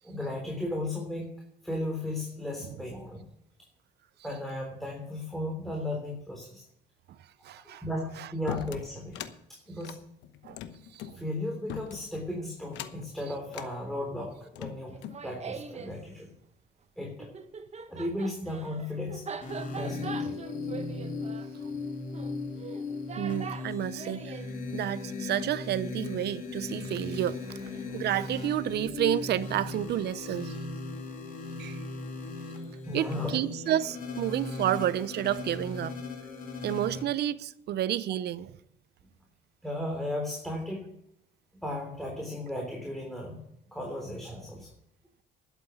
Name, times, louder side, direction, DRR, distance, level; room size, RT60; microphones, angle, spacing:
voice 1, 0.0-1.3 1.6-3.3 4.2-6.6 7.6-9.2 9.5-10.0 11.1-15.0 15.2-16.3 17.0-17.3 17.9-19.3 19.7-20.4 32.8-33.3 39.6-40.9 41.6-43.4 43.7-44.7, left 1 dB, ahead, 3.4 m, -35 dB
voice 2, 7.4-7.8 8.2-8.3 10.4-10.6 10.9-11.2 22.3-22.4 23.2-24.4 24.7-30.6 31.6-31.8 32.9-35.9 36.6-38.6, right 12 dB, 65° right, 0.7 m, -30 dB
sound 1, 8.5-9.4 9.8-11.2 11.7-12.2 12.7-13.1 13.5-13.7 14.3-15.2, left 10 dB, 80° left, 1.0 m, -40 dB
Laughter, 14.9-16.0 17.2-24.5, right 6 dB, 35° right, 1.2 m, -42 dB
sound 2, 19.4-37.0, left 3 dB, 45° left, 3.0 m, -37 dB
11.5 x 8.3 x 7.2 m
supercardioid pair, 85°, 19 cm